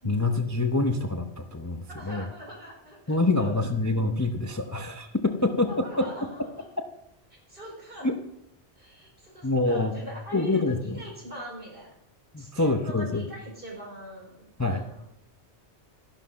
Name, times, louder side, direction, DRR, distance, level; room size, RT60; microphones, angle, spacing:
voice 1, 0.0-2.3 3.1-6.3 8.0-8.2 9.4-10.0 10.3-11.0 12.3-13.2 14.6-14.8, left 2 dB, 20° left, 6 dB, 0.7 m, -26 dB
voice 2, 1.9-3.7 5.7-6.7 7.5-8.1 8.8-11.9 12.4-15.1, equal, 55° right, -2 dB, 5.3 m, -42 dB
14.0 x 11.5 x 5.2 m, 0.76 s
omnidirectional pair, 1.1 m